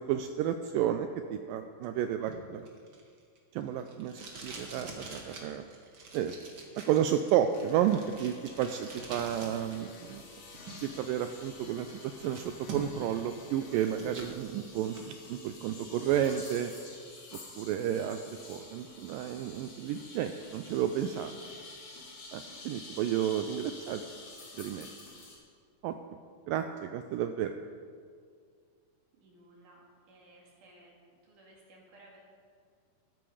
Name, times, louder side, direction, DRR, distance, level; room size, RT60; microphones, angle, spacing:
voice 1, 0.0-2.7 3.5-5.6 6.1-6.4 6.8-10.2 10.8-11.9 12.2-16.7 17.6-21.3 22.3-24.1 24.6-24.9 25.8-25.9 26.5-27.5, right 10 dB, 80° right, 8 dB, 2.1 m, -31 dB
Packing tape duct tape, 2.3-9.8 10.1-11.1 11.5-11.6 12.0-13.1 13.5-14.3 14.7-15.1, right 3 dB, 40° right, 2.0 m, -45 dB
sound 1, 7.5-14.0, left 6 dB, 90° left, 3.1 m, -55 dB
sound 2, 9.1-25.4, left 2 dB, 60° left, 4.3 m, -49 dB
voice 2, 29.1-30.9 31.2-32.2, right 1 dB, 60° right, -3 dB, 3.7 m, -58 dB
14.5 x 13.5 x 5.0 m, 2.2 s
omnidirectional pair, 4.3 m